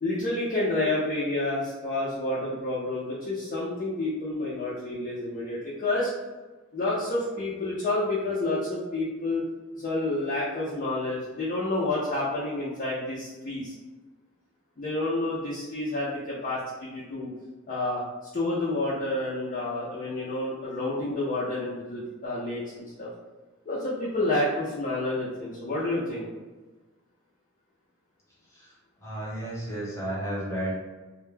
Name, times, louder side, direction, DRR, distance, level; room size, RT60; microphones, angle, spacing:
voice 1, 0.0-6.1 6.7-9.4 9.7-13.7 14.8-17.3 17.7-18.0 18.3-23.1 23.7-26.3, left 2 dB, 40° left, -7 dB, 0.4 m, -29 dB
voice 2, 28.5-30.8, right 1 dB, 15° left, -6 dB, 0.8 m, -33 dB
2.2 x 2.0 x 3.1 m, 1.2 s
head